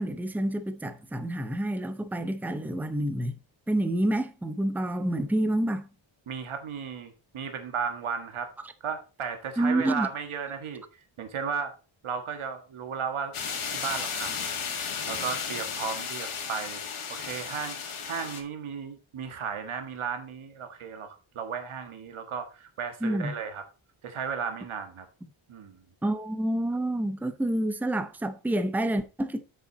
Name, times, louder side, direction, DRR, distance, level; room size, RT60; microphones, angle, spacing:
voice 1, 0.0-3.3 3.7-5.9 8.6-8.7 9.6-10.1 23.0-23.3 26.0-29.4, right 1 dB, 5° right, 0.6 m, -28 dB
voice 2, 6.3-8.5 8.8-10.8 11.2-11.7 12.0-13.3 13.7-16.8 17.1-17.8 18.0-23.6 24.0-25.0 25.5-25.8, right 6 dB, 75° right, 1.7 m, -35 dB
sound 1, 13.3-18.4, left 6 dB, 85° left, 2.2 m, -34 dB
8.0 x 6.7 x 4.0 m
wide cardioid pair, 155°, 49 cm